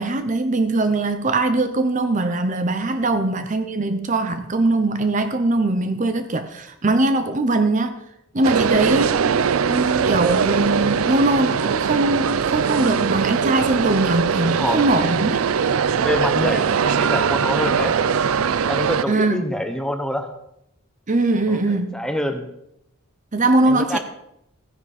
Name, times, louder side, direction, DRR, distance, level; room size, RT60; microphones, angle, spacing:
voice 1, 0.0-8.0 8.3-15.4 19.1-19.4 21.1-22.0 23.3-24.0, right 2 dB, 35° right, 9 dB, 0.8 m, -21 dB
sound 1, 8.4-19.0, right 6 dB, 80° right, 0.5 m, -21 dB
voice 2, 14.5-14.8 15.9-18.1 18.4-20.3 21.5-22.5 23.6-24.0, left 1 dB, 5° left, 6 dB, 0.9 m, -26 dB
14.5 x 10.0 x 4.2 m, 0.79 s
head